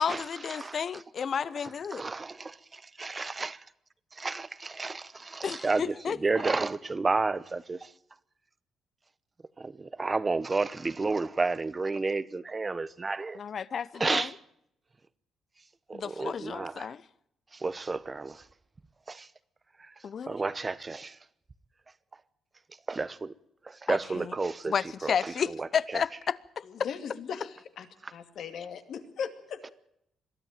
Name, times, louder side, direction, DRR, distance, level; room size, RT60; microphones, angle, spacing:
voice 1, 0.0-2.0 5.4-6.2 13.3-14.3 15.9-17.0 20.0-20.4 23.9-24.3 24.7-26.6, left 7 dB, 50° left, 0.8 m, -32 dB
voice 2, 1.9-3.6 4.2-7.9 9.6-13.4 14.0-14.3 15.9-16.9 17.6-18.4 19.1-19.3 20.3-21.2 22.9-23.3 23.7-24.7 25.0-25.7 25.9-26.0, right 3 dB, 25° right, 0.9 m, -31 dB
voice 3, 26.6-29.7, left 7 dB, 65° left, 2.4 m, -39 dB
22.0 x 13.5 x 9.0 m
cardioid pair, 90°, 0 cm